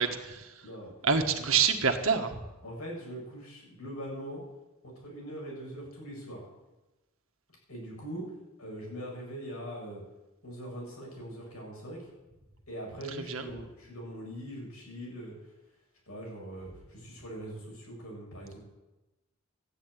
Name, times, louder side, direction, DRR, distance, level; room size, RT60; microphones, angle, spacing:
voice 1, 0.0-0.5 1.0-2.4 13.3-13.4, right 6 dB, 65° right, 5 dB, 1.6 m, -27 dB
voice 2, 2.6-4.4 4.8-6.5 7.7-8.2 8.6-10.0 10.4-12.1 12.7-15.3 16.1-18.6, equal, 80° left, -2 dB, 7.9 m, -42 dB
13.5 x 10.5 x 9.4 m, 1.1 s
head